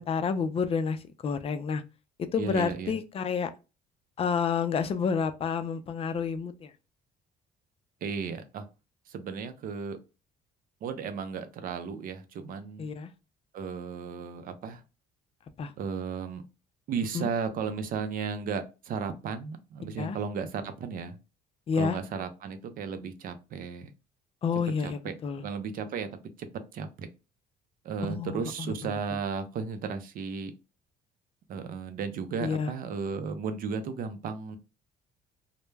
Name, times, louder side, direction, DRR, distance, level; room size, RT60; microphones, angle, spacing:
voice 1, 0.0-1.8 2.3-3.5 4.2-6.7 12.8-13.1 15.6-15.7 17.1-17.3 20.0-20.2 21.7-22.0 24.4-25.4 28.1-29.2 32.4-32.7, left 6 dB, 35° left, 0.4 m, -30 dB
voice 2, 2.4-2.9 8.0-8.7 9.1-10.0 10.8-12.9 13.5-14.8 15.8-16.4 16.9-21.2 21.7-23.9 24.8-26.1 26.4-26.5 26.7-27.1 27.8-30.5 31.5-34.6, right 6 dB, 55° right, 0.5 m, -34 dB
2.2 x 2.0 x 3.1 m
cardioid pair, 110°, 17 cm